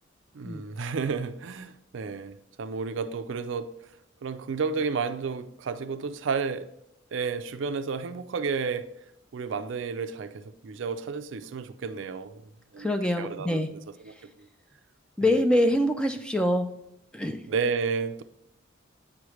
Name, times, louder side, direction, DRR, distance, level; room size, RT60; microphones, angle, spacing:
voice 1, 0.3-3.8 4.2-6.7 7.1-8.9 9.3-12.4 12.7-13.6 14.1-14.2 17.5-18.2, right 5 dB, 65° right, 0.4 m, -31 dB
voice 2, 12.8-13.7 15.2-16.7 17.1-17.4, left 1 dB, 5° left, 0.4 m, -24 dB
8.6 x 3.1 x 4.8 m
head